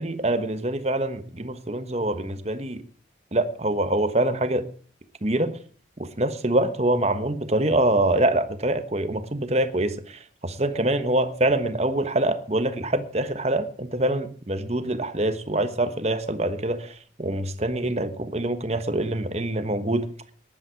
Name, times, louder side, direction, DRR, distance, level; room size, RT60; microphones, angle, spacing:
voice 1, 0.0-2.8 3.3-4.7 5.2-5.6 6.0-20.1, right 1 dB, 35° right, 1.3 m, -25 dB
18.5 x 11.0 x 4.7 m
head